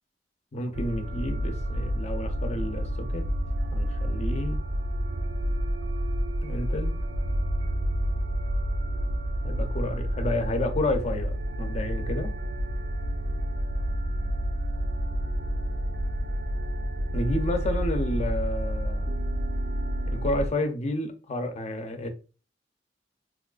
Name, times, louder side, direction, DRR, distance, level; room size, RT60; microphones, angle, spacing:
voice 1, 0.5-3.2 3.7-4.6 6.4-6.9 9.4-12.3 17.1-19.1 20.1-22.1, left 1 dB, 40° left, 0.6 m, -30 dB
sound 1, 0.7-20.5, equal, 90° right, 0.4 m, -29 dB
4.0 x 2.3 x 2.4 m
head